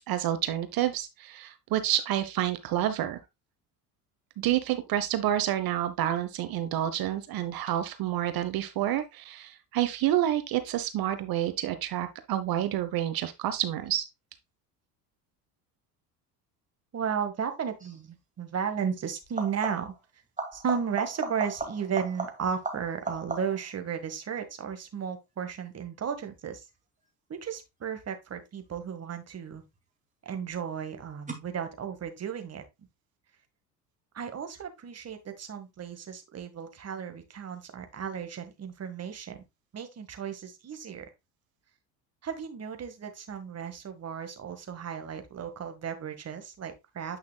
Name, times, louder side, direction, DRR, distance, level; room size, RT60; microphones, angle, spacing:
voice 1, 0.0-3.2 4.4-14.0, right 12 dB, 50° right, 1.0 m, -29 dB
voice 2, 16.9-19.9 20.5-26.6 27.3-29.6 30.2-32.6 34.1-39.4 39.7-41.0 42.2-47.2, right 7 dB, 30° right, 1.7 m, -34 dB
sound 1, 17.8-18.1 19.2-20.0 20.4-23.7 29.2-29.8 31.3-31.4, right 3 dB, 15° right, 2.3 m, -37 dB
9.0 x 5.8 x 2.2 m
hypercardioid pair, 75°, 47 cm